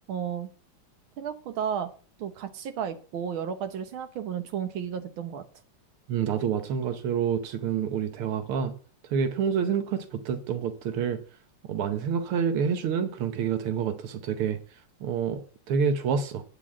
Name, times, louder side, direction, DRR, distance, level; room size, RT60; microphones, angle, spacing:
voice 1, 0.1-0.5 1.2-1.9 2.2-5.4, right 8 dB, 75° right, 1.8 m, -33 dB
voice 2, 6.1-8.7 9.1-11.2 11.6-14.6 15.0-16.4, right 7 dB, 90° right, 1.9 m, -28 dB
9.2 x 5.0 x 7.3 m
omnidirectional pair, 2.3 m